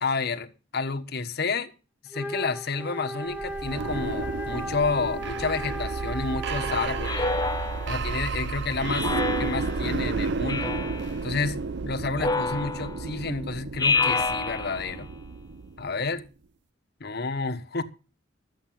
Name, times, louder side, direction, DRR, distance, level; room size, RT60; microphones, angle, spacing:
voice 1, 0.0-1.7 2.0-7.3 7.9-9.1 9.4-10.8 11.2-11.6 11.8-15.1 15.8-16.3 17.0-17.8, left 4 dB, 55° left, 1.3 m, -30 dB
Wind instrument woodwind instrument, 2.1-7.3, equal, 10° right, 1.9 m, -36 dB
sound 1, 3.3-16.1, right 4 dB, 65° right, 0.7 m, -32 dB
Speech synthesizer, 7.0-8.1 8.9-9.9 10.5-11.1 12.2-13.1 13.8-15.0, left 3 dB, 20° left, 0.8 m, -28 dB
13.0 x 8.3 x 7.6 m
head